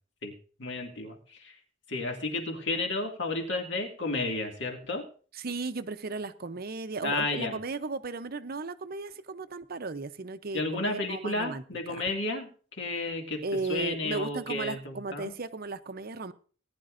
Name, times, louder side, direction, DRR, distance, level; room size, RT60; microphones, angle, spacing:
voice 1, 0.6-1.5 1.9-5.0 7.0-7.5 10.5-13.4 13.7-15.3, left 2 dB, 60° left, 2.2 m, -32 dB
voice 2, 5.3-11.6 11.9-12.0 13.4-16.3, right 3 dB, 45° right, 0.7 m, -35 dB
19.0 x 10.5 x 2.5 m
head